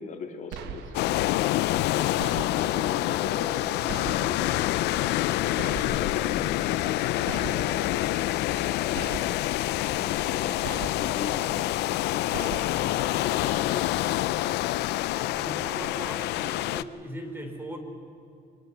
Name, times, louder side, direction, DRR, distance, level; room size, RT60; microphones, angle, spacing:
voice 1, 0.0-1.5 1.8-9.0 9.9-10.7 11.0-12.0 12.3-14.1, left 5 dB, 50° left, 4 dB, 2.2 m, -40 dB
sound 1, 0.5-1.2 2.2-2.9 3.9-4.6 5.6-6.3 7.3-8.0 8.9-9.6 10.6-11.3 12.3-13.0, right 7 dB, 85° right, 1.4 m, -39 dB
sound 2, 0.9-16.8, left 15 dB, 80° left, 0.5 m, -27 dB
voice 2, 15.3-17.8, equal, 15° right, 5 dB, 3.4 m, -39 dB
24.5 x 19.5 x 6.8 m, 2.5 s
cardioid pair, 110°, 17 cm